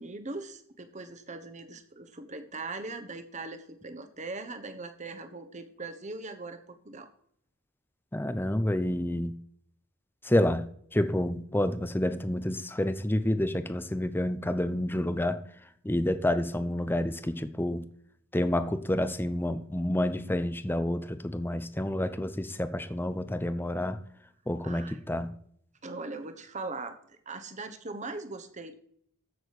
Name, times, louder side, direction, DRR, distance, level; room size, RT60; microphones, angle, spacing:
voice 1, 0.0-7.1 22.0-22.1 24.6-25.0 25.8-28.7, right 3 dB, 35° right, 8 dB, 1.3 m, -40 dB
voice 2, 8.1-9.3 10.2-10.6 10.9-15.4 15.8-17.8 18.3-24.0 24.5-25.3, left 1 dB, 10° left, 11 dB, 0.7 m, -29 dB
14.5 x 6.4 x 4.8 m, 0.64 s
head